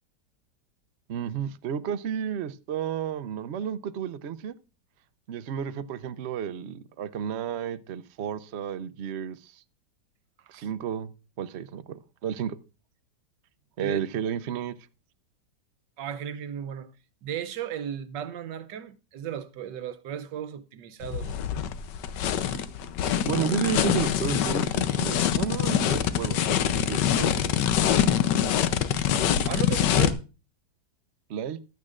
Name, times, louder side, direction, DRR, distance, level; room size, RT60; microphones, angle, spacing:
voice 1, 1.1-4.5 5.3-9.6 10.5-11.1 11.4-12.6 13.8-14.7 23.3-27.6 31.3-31.6, right 8 dB, 65° right, 0.6 m, -32 dB
voice 2, 16.0-16.9 17.2-21.4 29.4-30.2, right 9 dB, 80° right, 1.5 m, -35 dB
sound 1, 21.0-30.1, left 9 dB, 80° left, 1.4 m, -25 dB
15.0 x 12.0 x 2.5 m
omnidirectional pair, 1.9 m